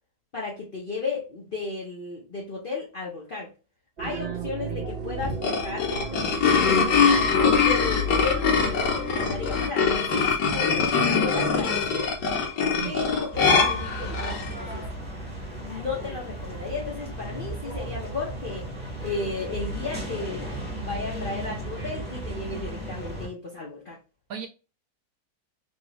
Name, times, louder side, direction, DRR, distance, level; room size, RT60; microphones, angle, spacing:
voice 1, 0.3-3.5 4.0-7.3 7.7-12.1 12.8-14.9 15.6-18.7 19.0-20.5 20.8-24.0, left 4 dB, 50° left, -3 dB, 0.6 m, -34 dB
sound 1, 4.0-9.6, left 1 dB, 35° right, 0.8 m, -34 dB
voice 2, 4.0-4.8 12.8-13.0 24.3-24.5, right 10 dB, 70° right, 5 dB, 0.9 m, -36 dB
sound 2, 5.2-14.5, left 5 dB, 75° left, 1.4 m, -23 dB
sound 3, 13.3-23.3, right 1 dB, 5° right, 1.1 m, -35 dB
3.0 x 2.7 x 2.9 m, 0.31 s
omnidirectional pair, 1.8 m